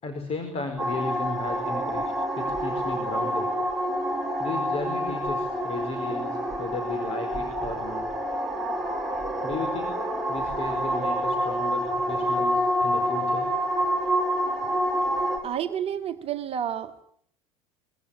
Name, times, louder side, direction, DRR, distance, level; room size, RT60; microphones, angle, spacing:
voice 1, 0.0-3.5 4.4-8.1 9.4-13.5, left 3 dB, 35° left, 6 dB, 4.8 m, -35 dB
sound 1, 0.8-15.4, equal, ahead, 7.8 m, -27 dB
voice 2, 15.4-17.0, right 9 dB, 35° right, 7 dB, 1.9 m, -30 dB
25.0 x 24.0 x 9.0 m, 0.64 s
figure-of-eight pair, 70°, 18 cm